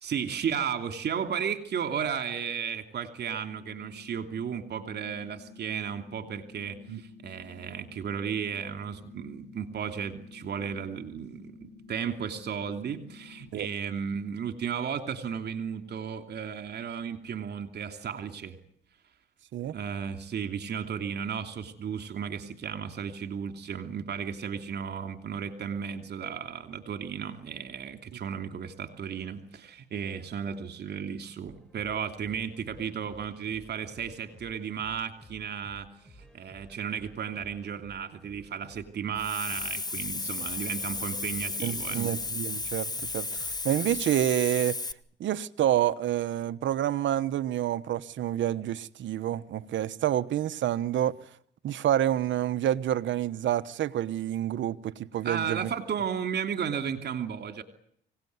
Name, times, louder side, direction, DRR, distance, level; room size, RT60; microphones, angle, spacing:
voice 1, 0.0-18.6 19.7-35.9 36.2-42.1 55.2-57.6, right 7 dB, 55° right, 2.9 m, -34 dB
sound 1, 3.5-13.5, left 4 dB, 40° left, 2.9 m, -51 dB
sound 2, 31.4-44.0, equal, 5° left, 4.6 m, -55 dB
Hiss, 39.2-44.9, left 3 dB, 20° left, 1.2 m, -34 dB
voice 2, 41.6-44.8 45.2-51.2 51.6-55.7, right 11 dB, 70° right, 1.1 m, -28 dB
25.5 x 18.0 x 9.6 m
cardioid pair, 90°, 20 cm